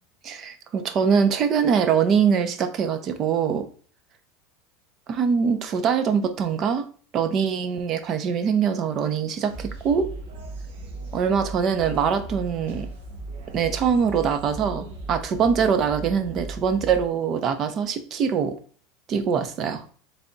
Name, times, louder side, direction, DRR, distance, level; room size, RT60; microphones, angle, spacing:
voice 1, 0.2-3.6 5.1-6.8 7.1-10.1 11.1-12.9 13.5-18.6 19.1-19.8, right 6 dB, 40° right, 9 dB, 0.7 m, -23 dB
sound 1, 9.5-17.1, right 2 dB, 85° right, 1.1 m, -37 dB
3.5 x 3.4 x 3.9 m, 0.43 s
supercardioid pair, 125°, 0 cm